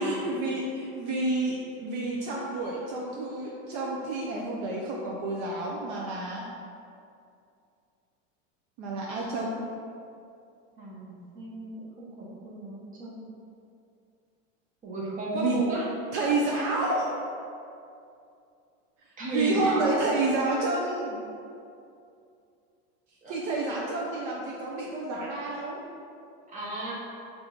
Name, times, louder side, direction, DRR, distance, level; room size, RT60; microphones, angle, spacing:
voice 1, 0.0-6.4 8.8-9.5 15.4-15.6 16.1-17.1 19.2-21.2 23.3-25.8, right 2 dB, 55° right, -3 dB, 0.6 m, -29 dB
voice 2, 10.8-13.2 14.8-15.9 19.2-20.0 23.2-23.7 26.5-26.9, right 2 dB, 25° right, -5 dB, 0.9 m, -34 dB
3.4 x 2.6 x 4.5 m, 2.5 s
supercardioid pair, 140°, 34 cm